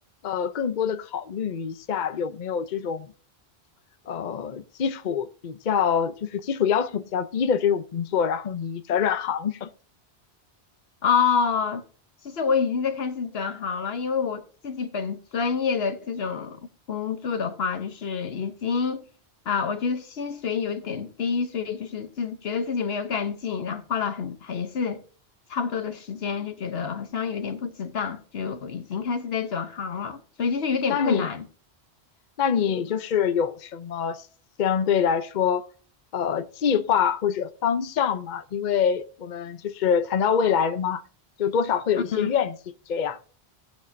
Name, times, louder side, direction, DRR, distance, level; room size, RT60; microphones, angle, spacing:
voice 1, 0.2-3.1 4.1-9.7 30.9-31.3 32.4-34.2 34.6-35.7 36.1-41.0 41.4-42.6 42.9-43.2, left 7 dB, 50° left, 0.7 m, -25 dB
voice 2, 11.0-11.8 12.3-16.6 16.9-19.1 19.5-25.0 25.5-31.4 42.1-42.3, left 6 dB, 70° left, 1.1 m, -28 dB
18.0 x 6.4 x 2.6 m
omnidirectional pair, 1.1 m